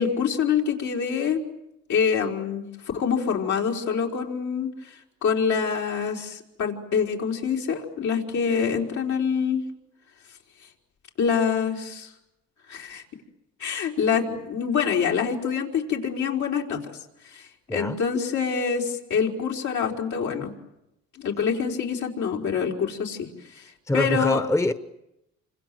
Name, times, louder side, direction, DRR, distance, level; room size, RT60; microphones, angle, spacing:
voice 1, 0.0-1.4 1.9-2.7 2.9-4.7 5.2-9.6 11.2-12.1 12.7-13.0 13.6-16.8 17.3-20.5 21.1-23.3 23.5-24.4, left 6 dB, 70° left, 4.6 m, -25 dB
voice 2, 17.7-18.0 23.9-24.7, left 1 dB, 10° left, 1.2 m, -24 dB
28.5 x 25.5 x 7.8 m
cardioid pair, 90°, 30 cm